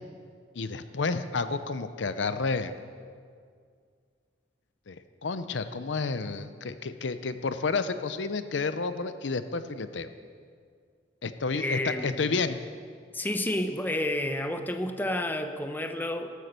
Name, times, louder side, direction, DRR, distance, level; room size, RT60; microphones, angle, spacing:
voice 1, 0.5-2.8 4.9-10.1 11.2-12.6, left 4 dB, 75° left, 11 dB, 0.7 m, -30 dB
voice 2, 11.5-12.4 13.1-16.3, left 1 dB, 10° left, 7 dB, 0.8 m, -30 dB
13.0 x 13.0 x 6.7 m, 2.1 s
head